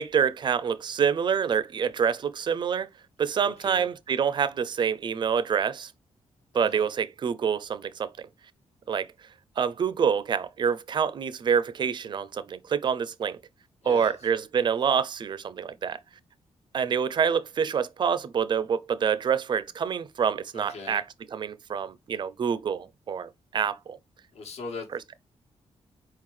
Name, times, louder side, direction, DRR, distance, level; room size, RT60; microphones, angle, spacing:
voice 1, 0.0-2.9 3.2-5.9 6.5-8.3 8.9-9.1 9.6-13.4 13.8-16.0 16.7-21.0 21.3-24.0, right 7 dB, 40° right, 0.4 m, -27 dB
voice 2, 3.4-3.9 6.5-6.9 13.8-14.1 20.5-21.0 24.3-24.9, left 4 dB, 70° left, 1.3 m, -40 dB
4.5 x 3.8 x 3.1 m
wide cardioid pair, 165°, 11 cm